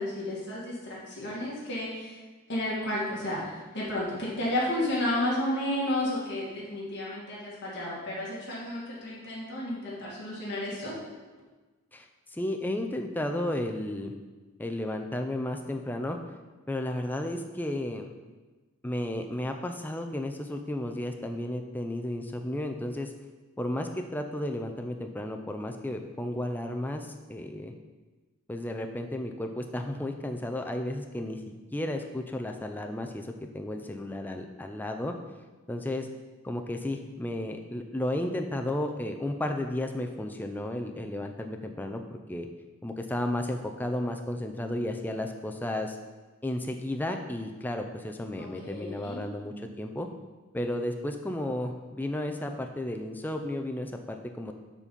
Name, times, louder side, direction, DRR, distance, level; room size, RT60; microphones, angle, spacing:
voice 1, 0.0-2.1 2.5-10.9 48.4-49.2, left 1 dB, 50° left, -6 dB, 1.8 m, -32 dB
voice 2, 11.9-14.1 14.6-16.2 16.7-18.1 18.8-23.1 23.6-27.7 28.5-35.1 35.7-36.1 36.4-42.5 42.8-46.0 46.4-50.1 50.5-54.5, left 1 dB, 10° left, 4 dB, 0.4 m, -33 dB
7.3 x 4.2 x 5.2 m, 1.3 s
head